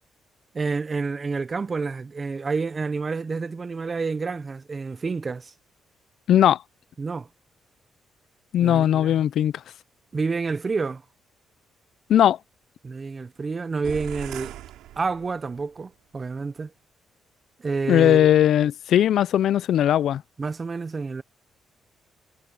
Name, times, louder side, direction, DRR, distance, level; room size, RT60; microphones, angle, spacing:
voice 1, 0.5-5.5 7.0-7.3 8.6-9.1 10.1-11.0 12.8-14.5 15.0-16.7 17.6-18.3 20.4-21.2, right 4 dB, 35° right, 0.9 m, -29 dB
voice 2, 6.3-6.6 8.5-9.5 12.1-12.4 17.9-20.2, left 11 dB, 70° left, 0.5 m, -18 dB
sound 1, 13.8-15.7, right 14 dB, 90° right, 5.2 m, -39 dB
cardioid pair, 90°, 0 cm